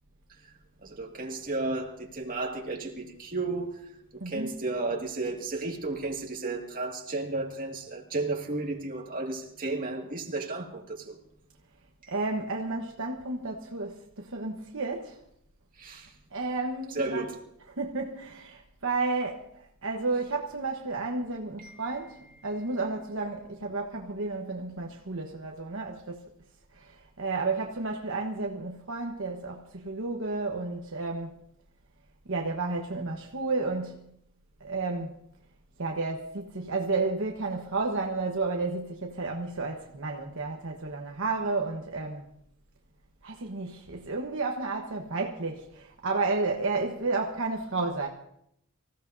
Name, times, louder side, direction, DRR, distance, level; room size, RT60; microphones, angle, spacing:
voice 1, 0.8-11.2 12.0-12.1 15.8-16.1 16.9-17.4 21.6-22.0, right 3 dB, 40° right, 2.0 m, -33 dB
voice 2, 4.2-4.6 12.1-15.2 16.3-17.3 17.7-26.2 26.7-31.3 32.3-34.0 34.6-35.1 35.8-42.3 43.2-48.1, right 3 dB, 65° right, 1.2 m, -32 dB
25.5 x 15.5 x 2.7 m
head